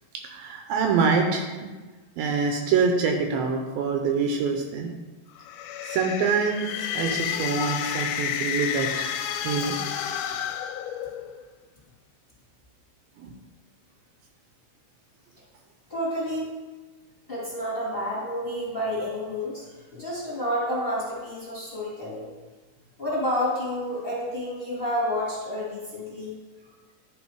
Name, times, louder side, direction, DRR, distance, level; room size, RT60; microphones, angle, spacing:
voice 1, 0.2-1.7 2.2-4.9 5.8-9.1 9.4-9.8 13.2-13.3, right 5 dB, 80° right, 3 dB, 2.3 m, -25 dB
sound 1, 5.4-11.4, left 9 dB, 80° left, 2.3 m, -30 dB
voice 2, 15.9-16.5 17.3-19.6 19.9-22.3 23.0-26.4, equal, 20° left, -7 dB, 2.0 m, -29 dB
11.5 x 4.0 x 4.6 m, 1.3 s
omnidirectional pair, 4.5 m